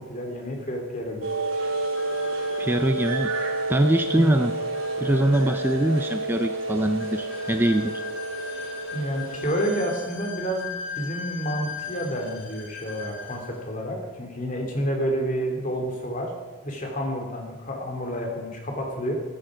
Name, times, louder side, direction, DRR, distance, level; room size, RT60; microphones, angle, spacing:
voice 1, 0.1-1.3 4.1-4.4 8.9-16.3 16.6-19.1, equal, 35° left, 2 dB, 2.9 m, -29 dB
sound 1, 1.2-9.8, right 2 dB, 80° right, 3.0 m, -30 dB
sound 2, 1.7-13.6, left 5 dB, 60° left, 3.0 m, -39 dB
voice 2, 2.6-3.3 3.7-4.5 5.0-8.0, right 1 dB, 10° right, 8 dB, 0.4 m, -23 dB
15.0 x 13.5 x 4.9 m, 1.3 s
head